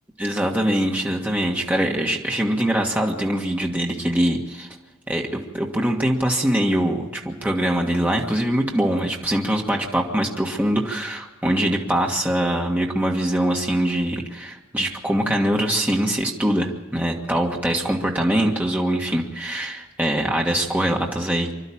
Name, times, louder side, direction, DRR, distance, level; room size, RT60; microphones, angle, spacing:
voice 1, 0.2-4.7 5.1-21.5, right 1 dB, 10° right, 0 dB, 1.7 m, -23 dB
25.5 x 12.0 x 8.7 m, 1.2 s
head